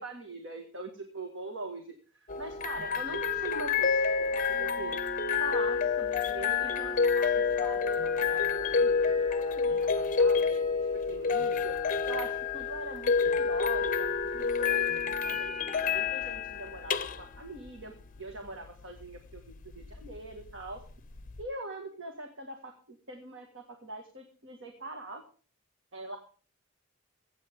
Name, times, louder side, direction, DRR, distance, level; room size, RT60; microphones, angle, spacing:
voice 1, 0.0-2.0 2.4-5.0 5.4-10.6 10.9-11.8 12.0-15.5 15.8-17.9 18.2-20.8 21.4-25.2 25.9-26.2, right 2 dB, 70° right, 3 dB, 1.9 m, -42 dB
sound 1, 2.3-21.4, left 5 dB, 40° left, 0.7 m, -29 dB
23.0 x 8.8 x 3.7 m, 0.39 s
head